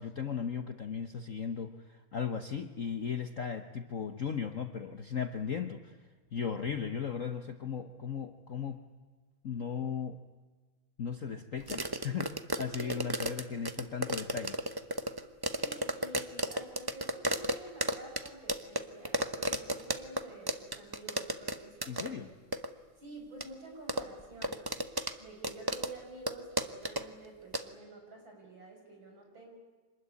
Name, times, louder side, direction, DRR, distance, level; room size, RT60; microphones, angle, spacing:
voice 1, 0.0-6.0 6.3-8.8 9.4-10.2 11.0-14.6 21.9-22.3, left 7 dB, 50° left, 8 dB, 1.1 m, -37 dB
sound 1, 11.7-20.2 20.5-21.6 21.8-22.1 22.5-22.7 23.4-23.5 23.9-25.1 25.4-25.9 26.3-26.4 26.6-27.0 27.5-27.6, right 1 dB, 25° right, 0.5 m, -32 dB
voice 2, 15.6-22.3 23.0-24.6 25.2-29.5, right 2 dB, 60° right, 1 dB, 7.1 m, -49 dB
26.0 x 20.5 x 9.7 m, 1.4 s
omnidirectional pair, 2.4 m